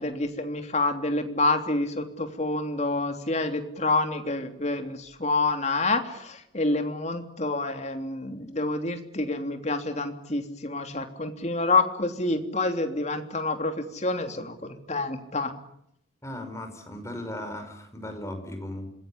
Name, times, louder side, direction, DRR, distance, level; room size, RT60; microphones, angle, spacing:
voice 1, 0.0-15.5, left 2 dB, 35° left, 6 dB, 3.2 m, -28 dB
voice 2, 16.2-18.9, left 1 dB, 15° left, 6 dB, 5.4 m, -37 dB
26.5 x 21.0 x 10.0 m, 0.75 s
head